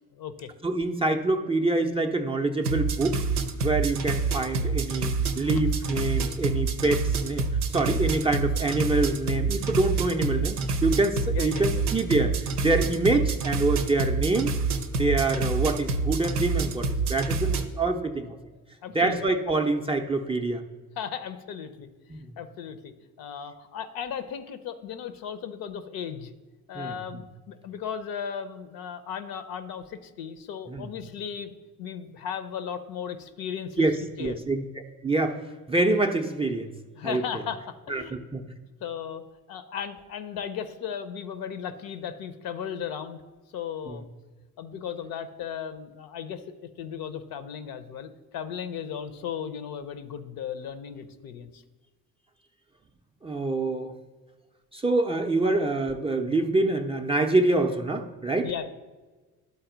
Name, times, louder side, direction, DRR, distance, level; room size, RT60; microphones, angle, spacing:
voice 1, 0.1-0.5 5.4-5.6 11.3-11.8 18.8-19.2 21.0-22.9 23.2-26.3 26.7-33.9 34.2-34.4 37.0-38.2 38.8-39.2 39.5-43.2 43.5-44.1 44.6-46.4 46.8-51.6 58.4-58.7, left 8 dB, 50° left, 10 dB, 0.7 m, -36 dB
voice 2, 0.6-3.2 3.6-12.3 12.6-14.6 15.0-18.4 18.9-20.6 22.1-22.2 26.7-27.2 30.7-30.9 33.8-34.6 35.0-35.4 35.7-36.7 37.0-37.4 37.9-38.4 43.9-44.0 53.2-53.9 54.7-58.5, right 2 dB, 15° right, 3 dB, 0.5 m, -26 dB
sound 1, 2.6-17.6, right 4 dB, 85° right, 0.6 m, -27 dB
12.0 x 4.1 x 3.9 m, 1.3 s
figure-of-eight pair, 50°, 44 cm